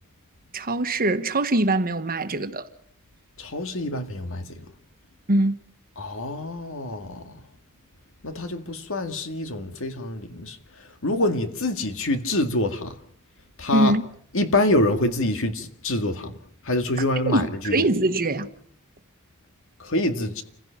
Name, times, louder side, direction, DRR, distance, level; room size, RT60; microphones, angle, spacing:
voice 1, 0.5-2.7 5.3-5.5 13.7-14.0 17.3-18.5, right 2 dB, 45° right, 1.3 m, -22 dB
voice 2, 3.4-4.7 6.0-7.3 8.2-10.6 11.0-13.0 13.6-13.9 14.3-16.3 16.6-17.9 19.8-20.4, left 1 dB, 65° left, 2.1 m, -26 dB
29.0 x 16.0 x 5.8 m
head